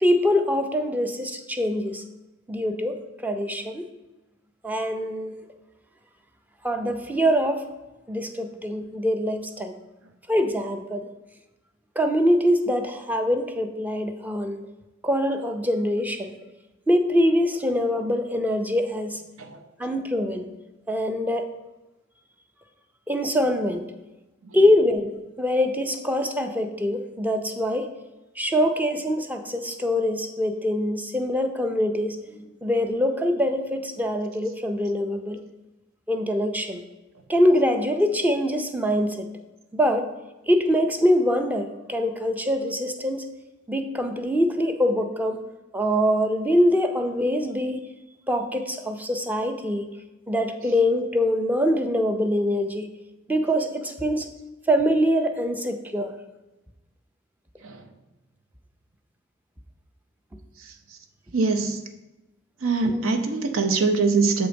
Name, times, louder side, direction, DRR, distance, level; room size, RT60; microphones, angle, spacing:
voice 1, 0.0-2.0 2.5-3.0 3.2-3.8 4.6-5.3 6.6-7.6 8.1-9.7 10.3-11.1 12.0-14.6 15.0-16.3 16.9-19.2 19.8-20.4 20.9-21.4 23.1-23.8 24.5-27.9 28.4-32.2 32.6-35.4 36.1-36.8 37.3-39.3 39.7-40.1 40.5-43.2 43.7-45.4 45.7-47.9 48.3-49.9 50.3-52.9 53.3-54.3 54.7-56.1 62.8-63.0, equal, 10° right, 6 dB, 0.4 m, -24 dB
voice 2, 61.3-61.8 62.6-64.5, right 4 dB, 85° right, 6 dB, 0.7 m, -23 dB
6.8 x 3.9 x 5.1 m, 1.1 s
head